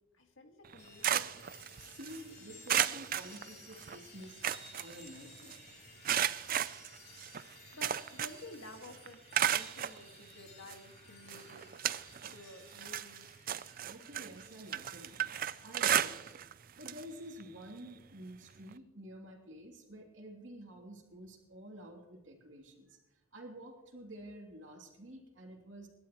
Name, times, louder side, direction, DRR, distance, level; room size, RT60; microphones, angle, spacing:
voice 1, 0.2-1.3 7.7-9.2 9.5-11.7 12.2-13.4, left 2 dB, 75° left, 4 dB, 1.9 m, -52 dB
sound 1, 0.6-2.2 2.7-4.0 4.2-5.6 6.0-8.5 8.8-10.0 10.7-10.8 11.3-12.4 12.7-16.5 16.8-17.0 17.4-17.5 18.7-18.8, right 10 dB, 45° right, 0.4 m, -34 dB
sound 2, 0.8-16.4, left 4 dB, 35° left, 3.5 m, -58 dB
voice 2, 1.8-4.4 4.8-5.6 13.8-16.4 16.8-23.0 23.3-25.9, right 1 dB, 65° right, 1 dB, 2.9 m, -50 dB
26.5 x 12.0 x 3.0 m, 1.1 s
head